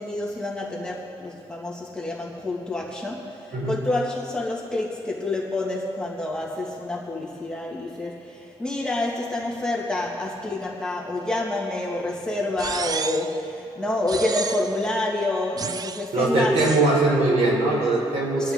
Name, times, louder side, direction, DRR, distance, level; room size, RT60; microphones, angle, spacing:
voice 1, 0.0-16.9 18.4-18.5, left 2 dB, 5° left, -3 dB, 2.0 m, -28 dB
sound 1, 12.6-13.4 14.1-14.8 15.6-16.1 16.6-16.9, right 5 dB, 35° right, 0.5 m, -31 dB
voice 2, 16.1-18.5, right 2 dB, 80° right, -4 dB, 4.4 m, -21 dB
25.5 x 10.5 x 3.7 m, 2.6 s
wide cardioid pair, 145°, 11 cm